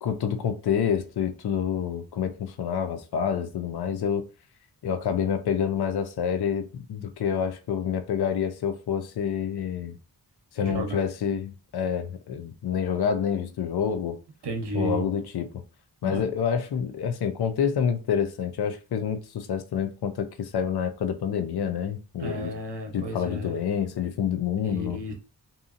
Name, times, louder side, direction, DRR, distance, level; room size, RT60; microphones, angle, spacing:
voice 1, 0.0-4.3 4.8-10.0 10.5-14.2 14.7-15.5 16.0-22.5 22.9-25.0, left 8 dB, 70° left, 0.5 m, -28 dB
voice 2, 10.6-11.0 14.4-15.0 16.0-16.2 22.2-23.6 24.6-25.1, right 1 dB, 80° right, 0.8 m, -32 dB
2.7 x 2.7 x 2.4 m
wide cardioid pair, 70°, 40 cm